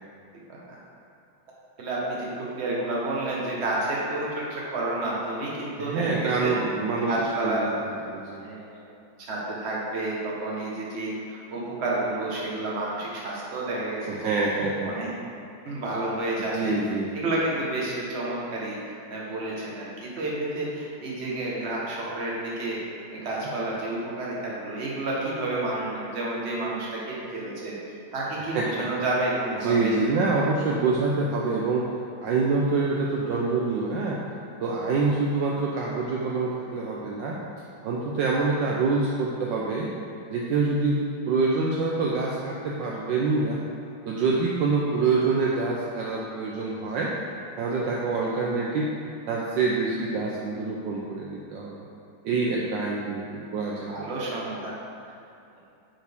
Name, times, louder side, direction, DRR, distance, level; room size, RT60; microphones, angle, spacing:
voice 1, 0.5-0.8 1.8-6.5 7.0-7.7 8.4-8.8 9.3-14.3 14.8-15.2 15.6-16.7 17.1-18.8 19.1-22.8 23.1-27.7 28.1-29.9 53.9-54.8, right 2 dB, 35° right, -5 dB, 1.3 m, -30 dB
voice 2, 5.8-7.1 7.4-7.6 8.1-8.5 14.1-14.9 16.5-17.2 28.5-28.9 29.6-31.8 32.2-34.2 34.6-37.4 37.8-39.9 40.3-43.6 44.1-47.1 47.6-48.9 49.3-51.7 52.2-53.9, right 3 dB, 70° right, -3 dB, 1.2 m, -26 dB
9.2 x 4.6 x 3.6 m, 2.6 s
omnidirectional pair, 2.3 m